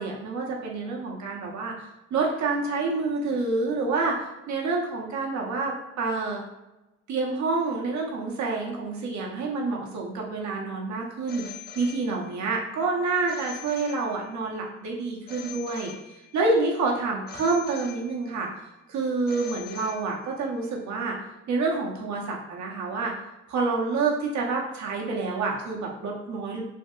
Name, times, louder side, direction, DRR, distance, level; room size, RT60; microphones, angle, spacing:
voice 1, 0.0-6.4 7.1-18.5 18.9-21.2 21.5-23.1 23.5-26.6, right 3 dB, 70° right, -1 dB, 0.8 m, -28 dB
Telephone, 11.3-12.5 13.3-14.5 15.3-16.5 17.3-18.5 19.3-20.5, left 8 dB, 35° left, 0.4 m, -44 dB
3.5 x 2.6 x 2.3 m, 0.99 s
cardioid pair, 90°, 30 cm